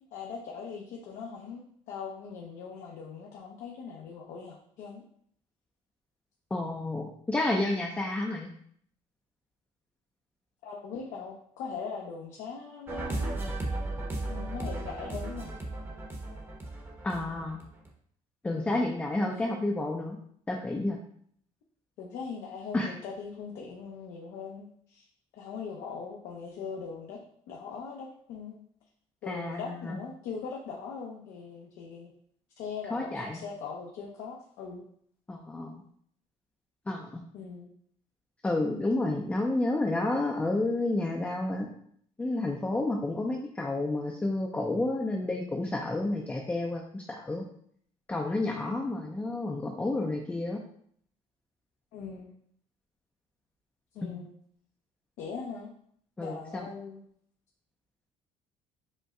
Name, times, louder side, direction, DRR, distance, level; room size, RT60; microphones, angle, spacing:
voice 1, 0.1-5.0 10.6-13.4 14.3-15.5 18.5-19.0 19.3-19.4 22.0-25.1 25.3-27.2 27.5-28.6 29.2-32.1 32.6-34.8 37.3-37.7 51.9-52.3 53.9-54.3 55.2-55.7 56.2-57.0, left 5 dB, 75° left, -1 dB, 0.6 m, -40 dB
voice 2, 6.5-8.5 17.0-17.6 18.4-20.2 20.5-21.0 22.7-22.9 29.3-30.0 32.9-33.4 35.3-35.8 36.9-37.2 38.4-41.7 42.2-47.4 48.1-50.6 54.0-54.2 56.2-56.7, left 2 dB, 10° left, 1 dB, 0.4 m, -30 dB
sound 1, 12.9-17.9, right 2 dB, 15° right, 0.8 m, -35 dB
5.2 x 2.1 x 3.6 m, 0.64 s
cardioid pair, 135°, 13 cm